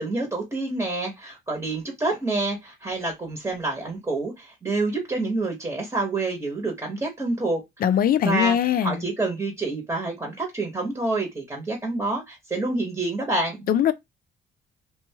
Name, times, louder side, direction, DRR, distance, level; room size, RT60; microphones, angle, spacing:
voice 1, 0.0-7.6 8.2-8.5 8.8-13.7, right 2 dB, 15° right, 1.0 m, -27 dB
voice 2, 7.8-9.0 13.7-13.9, left 9 dB, 50° left, 0.4 m, -21 dB
2.6 x 2.3 x 2.7 m
cardioid pair, 90°, 20 cm